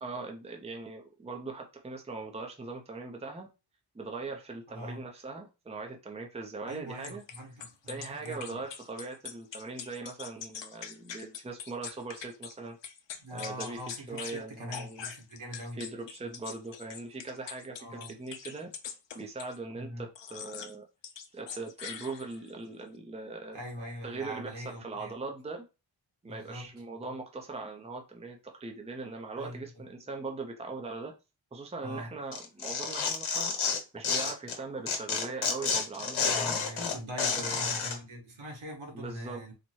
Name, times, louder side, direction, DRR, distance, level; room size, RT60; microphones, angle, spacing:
voice 1, 0.0-3.5 3.9-7.2 7.9-12.8 13.3-13.8 14.1-15.0 15.8-18.7 19.1-20.8 21.3-23.6 24.0-25.6 26.2-31.1 31.5-37.0 37.3-38.0 38.9-39.4, right 3 dB, 15° right, 0.6 m, -40 dB
voice 2, 4.7-5.0 6.7-8.6 13.2-15.8 17.8-18.2 19.8-20.1 23.5-25.2 26.2-26.7 29.4-29.8 31.8-32.1 36.3-39.5, equal, 90° right, 1.9 m, -42 dB
sound 1, 7.0-12.5 12.8-14.4 14.7-19.6 20.2-20.8 21.0-22.5, left 7 dB, 65° left, 0.6 m, -43 dB
Tearing, 32.3-34.6 34.9-38.0, left 5 dB, 85° left, 1.1 m, -30 dB
4.1 x 2.2 x 4.6 m
wide cardioid pair, 155°, 47 cm